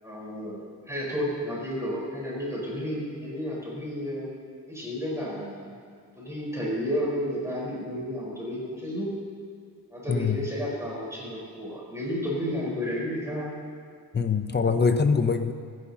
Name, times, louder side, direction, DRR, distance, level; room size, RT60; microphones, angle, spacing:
voice 1, 0.0-4.3 4.7-5.7 6.2-9.1 9.9-13.6 14.6-14.8, equal, 10° right, -6 dB, 4.4 m, -32 dB
voice 2, 10.1-10.5 14.1-15.5, left 5 dB, 30° left, 8 dB, 0.7 m, -23 dB
27.5 x 10.5 x 2.9 m, 2.1 s
wide cardioid pair, 130°, 36 cm